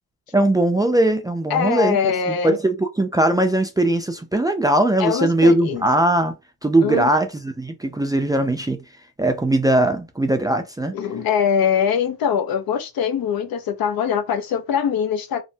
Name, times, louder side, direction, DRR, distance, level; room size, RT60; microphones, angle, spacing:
voice 1, 0.3-2.0 2.3-6.3 6.6-8.8 9.2-10.9, right 1 dB, 10° right, 0.4 m, -20 dB
voice 2, 1.5-2.6 5.0-5.8 6.8-7.1 10.9-15.4, left 7 dB, 70° left, 0.7 m, -22 dB
3.2 x 2.0 x 2.7 m
cardioid pair, 105°, 36 cm